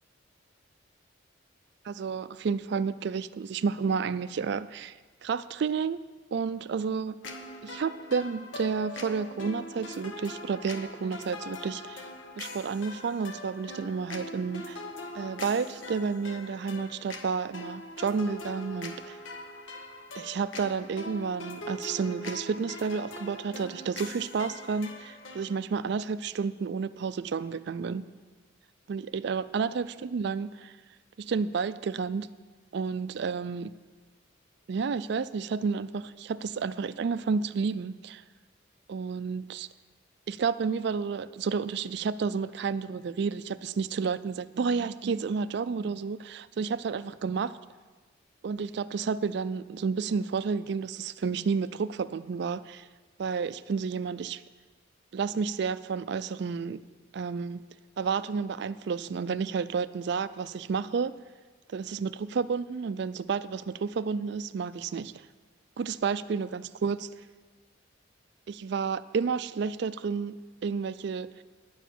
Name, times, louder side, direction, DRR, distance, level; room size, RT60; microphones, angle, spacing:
voice 1, 1.8-6.0 6.3-7.2 7.6-12.1 12.4-14.8 15.1-19.2 20.2-28.0 28.9-30.7 31.2-32.3 32.7-33.7 34.7-38.2 38.9-39.7 40.3-47.6 48.4-52.9 53.2-54.4 55.1-56.8 57.1-57.6 58.0-61.2 61.7-65.1 65.8-67.1 68.5-71.4, right 5 dB, 55° right, 15 dB, 0.3 m, -31 dB
sound 1, 7.2-25.6, left 2 dB, 70° left, 0.9 m, -42 dB
11.0 x 7.2 x 7.4 m, 1.3 s
head